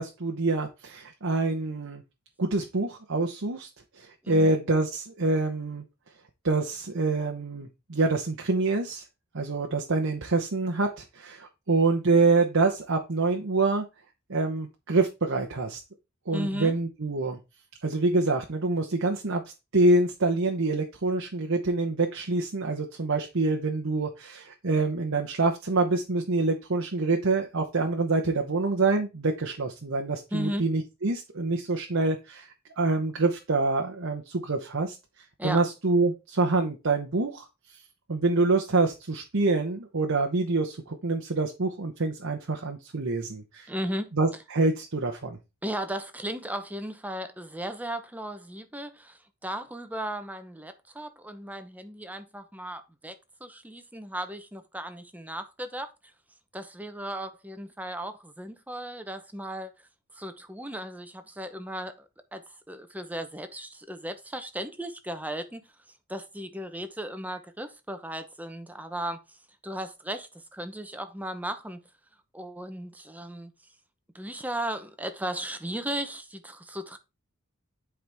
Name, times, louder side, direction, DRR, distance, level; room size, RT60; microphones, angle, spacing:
voice 1, 0.0-2.0 2.4-3.7 3.9-5.8 6.4-9.0 9.3-13.8 14.3-15.8 16.3-17.4 17.8-19.4 19.7-32.5 32.8-37.4 37.7-37.8 38.1-43.7 44.2-45.4, right 3 dB, 60° right, 1.0 m, -26 dB
voice 2, 4.2-4.6 16.3-16.8 30.3-30.6 35.4-35.6 43.7-44.1 45.6-53.1 53.4-55.9 56.5-59.9 60.1-61.9 62.3-65.7 66.1-69.2 69.6-71.8 72.3-73.5 74.1-77.0, right 1 dB, 5° right, 0.9 m, -36 dB
10.5 x 4.9 x 3.5 m
head